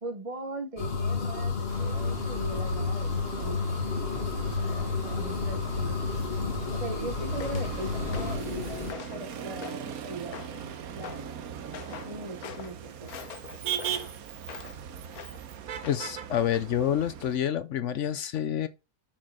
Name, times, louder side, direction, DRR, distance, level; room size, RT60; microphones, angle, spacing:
voice 1, 0.0-3.1 3.4-3.7 4.2-5.9 6.7-10.5 10.8-11.2 11.9-13.1, right 2 dB, 25° right, 1.0 m, -39 dB
sound 1, 0.8-8.9, left 4 dB, 40° left, 1.7 m, -31 dB
Motor vehicle (road), 1.7-17.4, right 8 dB, 75° right, 1.3 m, -40 dB
sound 2, 7.4-7.7 8.1-8.5 8.9-9.2 9.6-10.0 10.3-10.7 11.0-11.3 11.7-12.1 12.4-12.7 13.1-14.8 15.1-15.4 15.8-16.2 16.5-16.7, left 9 dB, 85° left, 1.3 m, -43 dB
voice 2, 15.8-18.7, left 10 dB, 65° left, 0.9 m, -28 dB
6.4 x 5.8 x 4.8 m
omnidirectional pair, 1.6 m